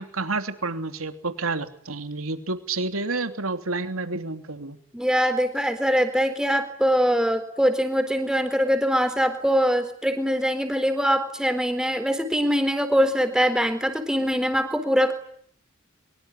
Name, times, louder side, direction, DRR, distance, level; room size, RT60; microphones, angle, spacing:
voice 1, 0.0-4.8, right 3 dB, 85° right, 8 dB, 3.1 m, -29 dB
voice 2, 4.9-15.1, equal, 5° right, 8 dB, 4.0 m, -23 dB
25.0 x 23.5 x 9.9 m, 0.63 s
head